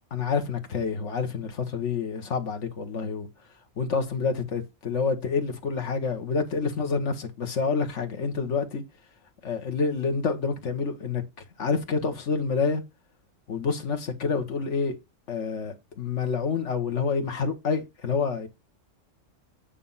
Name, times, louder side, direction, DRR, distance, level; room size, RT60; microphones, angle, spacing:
voice 1, 0.1-3.3 3.8-8.8 9.4-11.2 11.6-12.8 13.5-15.0 15.3-18.5, left 5 dB, 65° left, 1.6 m, -28 dB
8.7 x 3.4 x 5.5 m
omnidirectional pair, 1.3 m